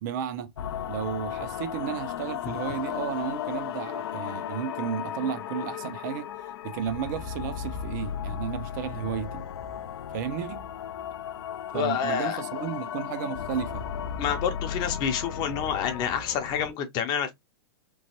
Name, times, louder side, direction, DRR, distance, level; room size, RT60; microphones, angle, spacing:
voice 1, 0.0-0.5 0.9-6.3 6.6-9.4 10.1-10.7 11.7-13.8, right 9 dB, 50° right, 0.4 m, -33 dB
sound 1, 0.6-16.7, left 9 dB, 80° left, 0.4 m, -35 dB
voice 2, 11.7-12.4 14.2-17.3, left 8 dB, 35° left, 0.6 m, -28 dB
3.0 x 2.1 x 2.9 m
hypercardioid pair, 140°, 13 cm